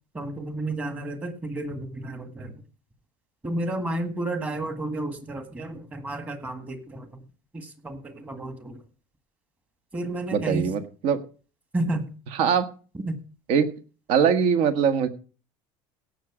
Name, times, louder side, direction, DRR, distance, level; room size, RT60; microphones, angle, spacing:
voice 1, 0.1-2.5 3.4-7.2 7.5-8.8 9.9-10.7 11.7-12.1 12.9-13.2, right 2 dB, 15° right, 8 dB, 1.8 m, -31 dB
voice 2, 10.3-11.2 12.4-12.7 13.5-13.7 14.1-15.1, right 7 dB, 55° right, 10 dB, 1.6 m, -22 dB
17.0 x 6.6 x 5.0 m, 0.36 s
cardioid pair, 155°, 12 cm